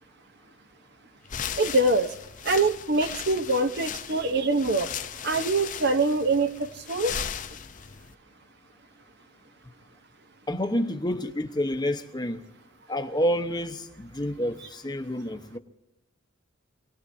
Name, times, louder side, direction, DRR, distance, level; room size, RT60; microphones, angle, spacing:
sound 1, 1.3-8.1, left 8 dB, 40° left, 0.6 m, -37 dB
voice 1, 1.6-2.1 2.4-4.9 5.2-7.2, right 2 dB, 50° right, 0.9 m, -24 dB
voice 2, 10.5-12.4 12.9-15.6, equal, 20° left, 1.0 m, -28 dB
27.5 x 19.0 x 2.7 m
head